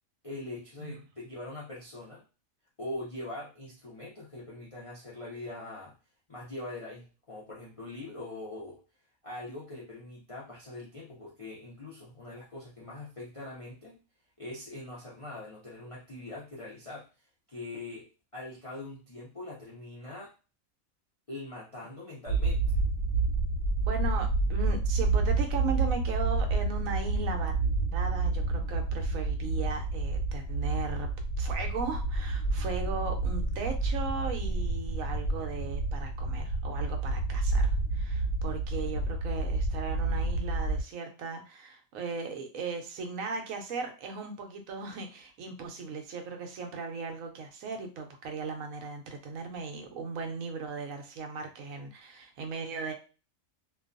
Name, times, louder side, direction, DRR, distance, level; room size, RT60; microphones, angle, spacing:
voice 1, 0.2-2.2 2.8-5.9 6.3-8.8 9.2-14.0 14.4-17.1 17.5-18.1 18.3-20.3 21.3-22.8, left 2 dB, 45° left, -5 dB, 0.4 m, -42 dB
sound 1, 22.3-40.8, right 3 dB, 70° left, 1.1 m, -29 dB
voice 2, 23.8-27.5 27.9-31.1 31.4-52.9, right 4 dB, 75° right, 4 dB, 1.0 m, -37 dB
2.6 x 2.2 x 2.5 m, 0.33 s
omnidirectional pair, 1.5 m